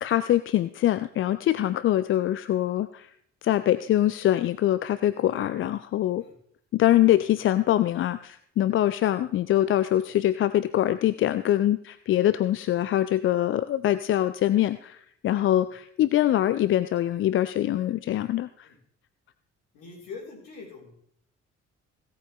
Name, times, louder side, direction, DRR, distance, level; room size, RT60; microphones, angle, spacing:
voice 1, 0.0-3.1 3.4-6.2 6.7-18.7, left 13 dB, 35° left, 14 dB, 0.4 m, -24 dB
voice 2, 19.7-20.9, left 4 dB, 60° left, -1 dB, 3.7 m, -43 dB
17.0 x 8.6 x 3.2 m, 0.65 s
figure-of-eight pair, 45°, 37 cm